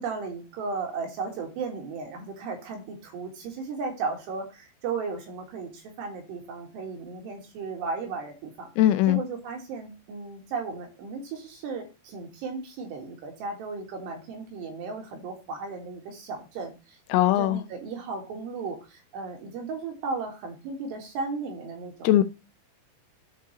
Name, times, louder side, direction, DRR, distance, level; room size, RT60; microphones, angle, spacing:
voice 1, 0.0-8.7 9.1-22.1, right 4 dB, 85° right, 3.9 m, -35 dB
voice 2, 8.8-9.2 17.1-17.6 22.0-22.2, left 14 dB, 85° left, 2.3 m, -20 dB
13.0 x 4.7 x 3.0 m
omnidirectional pair, 4.8 m